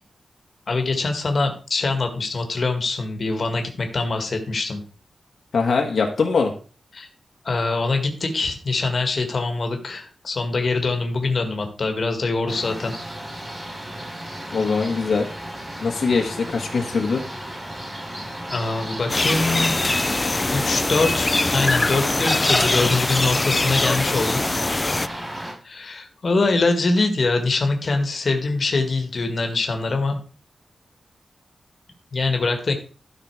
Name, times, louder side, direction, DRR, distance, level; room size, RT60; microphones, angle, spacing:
voice 1, 0.7-4.8 6.9-7.1 7.4-12.9 18.5-19.7 20.5-24.4 25.6-30.2 32.1-32.7, left 3 dB, 50° left, 5 dB, 1.9 m, -23 dB
voice 2, 5.5-6.5 14.5-15.3 15.8-17.2, left 4 dB, 70° left, 2 dB, 1.6 m, -22 dB
sound 1, 12.5-25.5, right 1 dB, 10° right, 3.5 m, -34 dB
sound 2, 19.1-25.1, left 2 dB, 20° left, 0.4 m, -22 dB
12.5 x 5.9 x 4.9 m, 0.38 s
wide cardioid pair, 145°, 0 cm